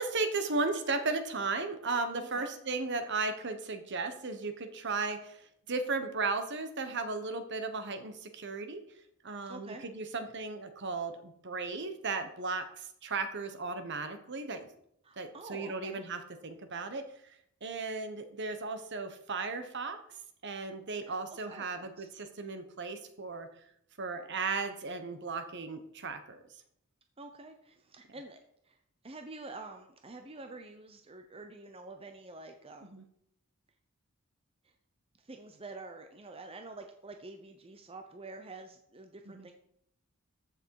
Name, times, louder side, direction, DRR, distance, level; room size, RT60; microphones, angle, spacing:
voice 1, 0.0-5.4 5.7-8.8 9.2-14.7 15.2-17.0 17.6-20.0 20.4-23.5 24.0-26.4 32.8-33.0 39.3-39.5, right 3 dB, 55° right, 8 dB, 1.3 m, -35 dB
voice 2, 9.5-9.8 15.0-16.0 21.0-22.1 27.2-28.4 28.7-28.8 29.0-33.0 35.2-39.5, right 2 dB, 25° right, 5 dB, 0.8 m, -47 dB
14.5 x 6.5 x 4.8 m, 0.73 s
head